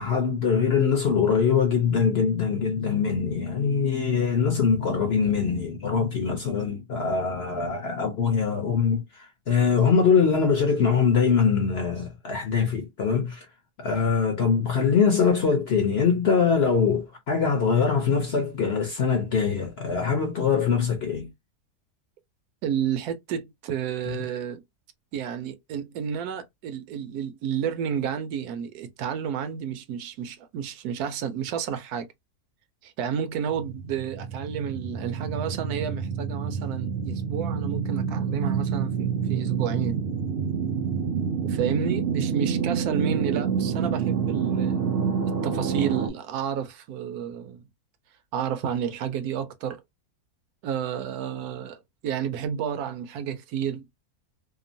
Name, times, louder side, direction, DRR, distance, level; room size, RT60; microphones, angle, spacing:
voice 1, 0.0-13.5 13.8-21.3, left 6 dB, 60° left, 0.7 m, -23 dB
voice 2, 22.6-24.6 25.1-32.1 32.8-40.0 41.4-44.8 45.2-47.6 48.3-49.8 50.6-53.8, right 8 dB, 80° right, 1.1 m, -31 dB
sound 1, 33.5-46.1, right 6 dB, 55° right, 0.6 m, -28 dB
2.9 x 2.0 x 2.6 m
omnidirectional pair, 1.6 m